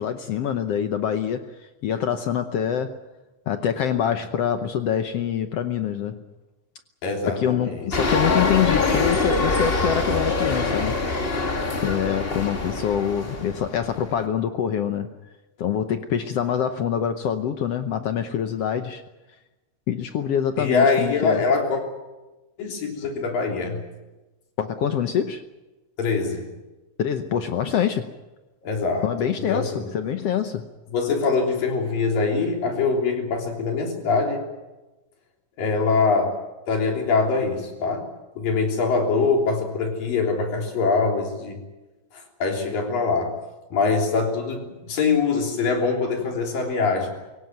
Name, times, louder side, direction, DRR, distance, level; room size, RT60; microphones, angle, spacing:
voice 1, 0.0-1.5 1.8-3.0 3.5-6.2 7.3-11.0 11.8-15.1 15.6-19.0 19.9-21.4 24.6-25.4 27.0-28.1 29.0-30.7, left 8 dB, 70° left, 8 dB, 1.5 m, -25 dB
voice 2, 7.0-7.9 20.6-21.8 22.6-23.8 26.0-26.5 28.6-29.1 29.5-29.9 30.9-34.5 35.6-36.4 36.7-38.1 38.4-41.6 42.4-43.4 43.7-47.1, left 4 dB, 90° left, 2 dB, 5.3 m, -23 dB
sound 1, 7.9-14.2, left 3 dB, 30° left, 1.1 m, -24 dB
24.0 x 17.5 x 9.2 m, 1.1 s
omnidirectional pair, 3.8 m